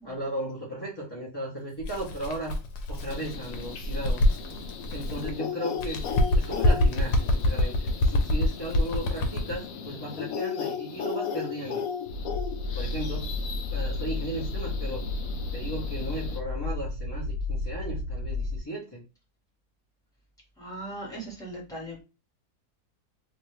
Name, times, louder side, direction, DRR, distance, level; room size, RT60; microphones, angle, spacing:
voice 1, 0.0-2.6 2.9-4.2 4.9-6.0 6.3-11.8 12.7-13.3 13.7-15.0 15.5-19.0, right 1 dB, 20° left, -6 dB, 0.9 m, -36 dB
Bird, 1.8-5.4 5.7-9.6, left 1 dB, 90° left, 1.2 m, -26 dB
sound 1, 3.1-16.4, left 7 dB, 70° left, 1.0 m, -37 dB
sound 2, 12.1-18.6, left 2 dB, 65° right, 1.1 m, -32 dB
voice 2, 20.6-22.0, right 1 dB, ahead, -4 dB, 1.5 m, -39 dB
2.9 x 2.8 x 3.2 m, 0.30 s
omnidirectional pair, 1.7 m